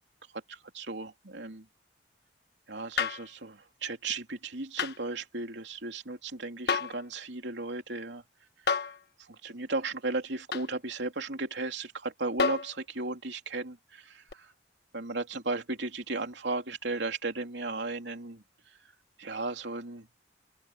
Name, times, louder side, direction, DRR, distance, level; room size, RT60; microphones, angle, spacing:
voice 1, 0.3-1.7 2.7-8.2 8.8-8.9 9.4-14.5 14.9-18.8 19.2-20.1, right 3 dB, 80° right, 3.1 m, -35 dB
sound 1, 3.0-3.3 4.8-5.0 6.7-7.0 8.7-9.0 10.5-10.7 12.4-12.8 14.3-14.4, left 5 dB, 65° left, 1.3 m, -29 dB
head